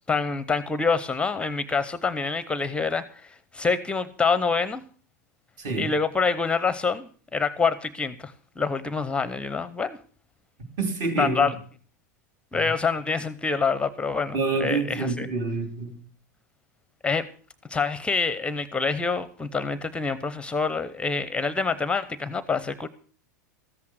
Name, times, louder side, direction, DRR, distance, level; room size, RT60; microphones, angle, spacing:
voice 1, 0.1-4.8 5.8-10.0 11.2-11.6 12.5-15.3 17.0-17.2 17.7-22.9, left 4 dB, 10° left, 0.7 m, -26 dB
voice 2, 5.6-5.9 10.8-11.5 14.3-16.0, right 3 dB, 45° right, 3.3 m, -27 dB
13.5 x 8.5 x 6.2 m
hypercardioid pair, 105°, 9 cm